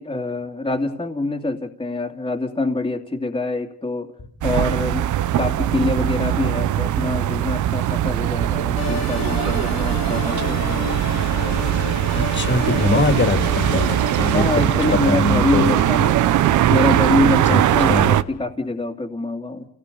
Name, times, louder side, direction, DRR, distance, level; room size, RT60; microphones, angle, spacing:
voice 1, 0.0-4.1 4.4-5.1 5.4-10.9 14.3-16.2 16.7-19.7, left 2 dB, 15° left, 2 dB, 2.7 m, -25 dB
sound 1, 4.4-18.2, right 12 dB, 75° right, 1.0 m, -20 dB
sound 2, 8.8-15.7, left 7 dB, 60° left, 1.8 m, -32 dB
voice 2, 12.1-14.5 14.9-15.8 17.5-17.6 17.9-18.1, left 3 dB, 40° left, 8 dB, 2.9 m, -22 dB
28.5 x 18.5 x 7.0 m, 0.68 s
cardioid pair, 90°, 30 cm